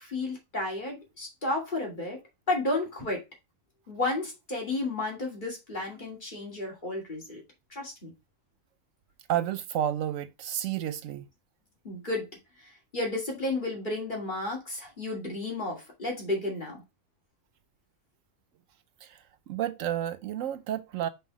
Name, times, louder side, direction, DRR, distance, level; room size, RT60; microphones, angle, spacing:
voice 1, 0.0-2.2 2.5-3.2 3.9-7.4 7.7-8.1 11.8-12.3 12.6-16.8, left 2 dB, 35° left, 2.6 m, -32 dB
voice 2, 9.3-11.3 19.0-21.1, right 11 dB, 75° right, 0.9 m, -31 dB
5.4 x 4.1 x 4.7 m
omnidirectional pair, 1.4 m